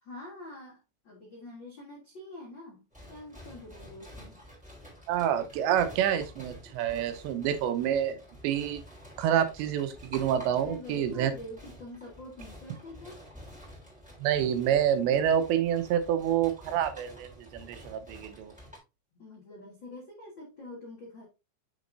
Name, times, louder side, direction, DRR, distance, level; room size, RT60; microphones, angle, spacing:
voice 1, 0.0-2.8 3.1-4.4 10.6-13.2 19.1-21.3, left 1 dB, 85° left, 1.0 m, -45 dB
sound 1, 2.9-18.8, equal, ahead, 2.3 m, -50 dB
voice 2, 5.1-8.8 9.2-11.3 14.2-18.5, right 9 dB, 80° right, 3.1 m, -28 dB
7.3 x 6.3 x 2.6 m
omnidirectional pair, 5.1 m